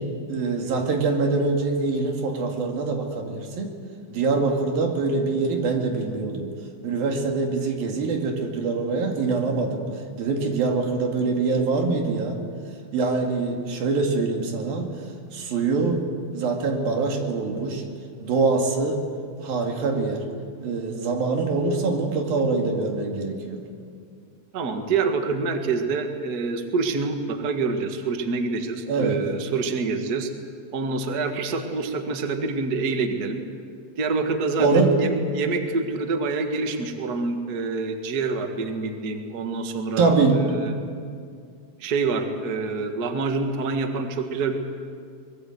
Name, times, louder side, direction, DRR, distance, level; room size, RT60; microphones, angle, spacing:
voice 1, 0.3-3.7 4.1-6.5 6.8-9.8 10.2-12.4 12.9-14.9 15.3-16.0 16.3-17.8 18.2-19.0 19.4-20.2 20.6-23.6 28.9-29.2 34.6-35.1 40.0-40.4, right 3 dB, 85° right, 2 dB, 4.2 m, -24 dB
voice 2, 24.5-30.3 30.7-33.4 34.0-40.8 41.8-44.6, right 4 dB, 40° right, 5 dB, 1.6 m, -26 dB
24.0 x 21.5 x 7.9 m, 2.2 s
omnidirectional pair, 4.0 m